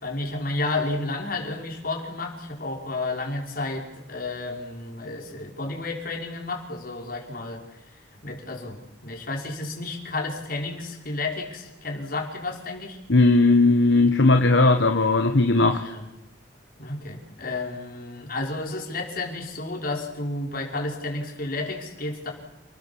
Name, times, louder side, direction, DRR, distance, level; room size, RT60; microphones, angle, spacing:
voice 1, 0.0-7.6 8.2-13.0 15.8-16.0 16.8-22.3, left 2 dB, 50° left, 1 dB, 5.6 m, -31 dB
voice 2, 13.1-15.8, left 2 dB, 70° left, 6 dB, 1.4 m, -18 dB
29.5 x 19.5 x 7.4 m, 0.98 s
head